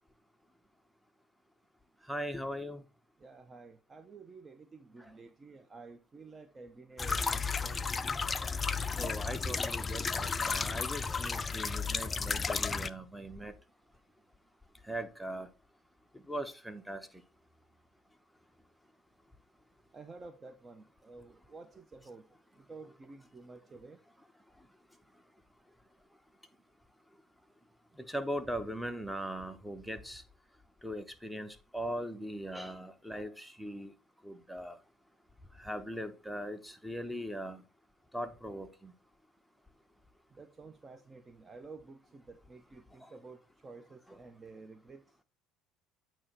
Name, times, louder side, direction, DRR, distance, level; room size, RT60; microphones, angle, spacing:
voice 1, 2.0-2.8 5.0-5.1 9.0-13.6 14.8-15.5 16.1-17.2 24.5-25.2 27.9-30.2 30.8-33.9 34.2-34.8 35.4-37.6 38.1-38.9 43.0-43.1, equal, ahead, 0.9 m, -40 dB
voice 2, 3.2-7.8 19.9-22.3 22.6-24.0 40.3-45.0, right 3 dB, 30° right, 0.6 m, -51 dB
sound 1, 7.0-12.9, left 5 dB, 25° left, 0.4 m, -33 dB
8.6 x 3.0 x 4.4 m
hypercardioid pair, 70°, 0 cm